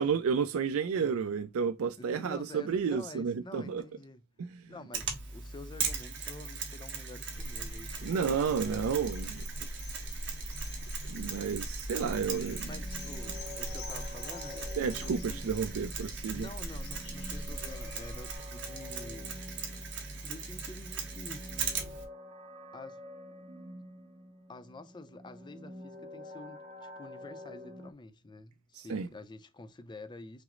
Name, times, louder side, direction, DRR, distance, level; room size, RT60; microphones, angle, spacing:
voice 1, 0.0-3.8 4.4-4.6 8.0-9.4 11.1-12.7 14.8-16.5 28.7-29.1, right 6 dB, 75° right, 0.4 m, -31 dB
voice 2, 2.0-4.2 4.7-9.0 12.6-14.8 15.2-15.5 16.3-19.4 20.2-21.5 22.7-23.0 24.5-30.4, left 2 dB, 20° left, 0.5 m, -48 dB
Mechanisms, 4.9-22.0, right 5 dB, 55° right, 1.4 m, -39 dB
sound 1, 7.3-18.4, left 1 dB, 70° left, 1.0 m, -42 dB
sound 2, 12.1-27.9, left 1 dB, 35° right, 0.7 m, -48 dB
5.9 x 2.0 x 3.7 m
head